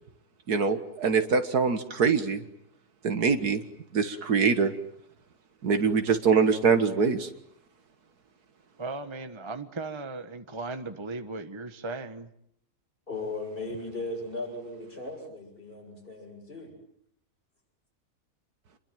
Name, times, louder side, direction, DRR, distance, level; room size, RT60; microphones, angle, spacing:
voice 1, 0.5-2.4 3.0-3.6 3.9-4.7 5.6-7.3, right 5 dB, 75° right, 8 dB, 2.0 m, -24 dB
voice 2, 8.8-12.3, right 3 dB, 20° right, 8 dB, 1.3 m, -37 dB
voice 3, 13.1-16.7, left 2 dB, 35° left, 2 dB, 7.8 m, -37 dB
27.5 x 22.0 x 9.2 m, 0.71 s
omnidirectional pair, 1.6 m